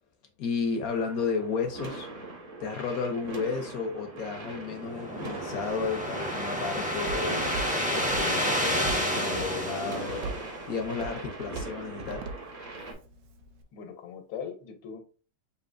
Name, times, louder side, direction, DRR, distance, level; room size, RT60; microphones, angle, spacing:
voice 1, 0.4-2.1 2.6-7.4 7.9-10.3 10.7-12.2, left 5 dB, 65° left, 0.9 m, -32 dB
sound 1, 0.9-12.9, right 2 dB, 50° right, 1.3 m, -41 dB
sound 2, 4.3-10.9, equal, 10° right, 0.4 m, -30 dB
Walk footsteps, 5.7-13.6, right 3 dB, 70° right, 0.9 m, -42 dB
voice 2, 13.7-15.0, left 7 dB, 85° left, 1.6 m, -40 dB
6.6 x 2.7 x 2.5 m
omnidirectional pair, 2.1 m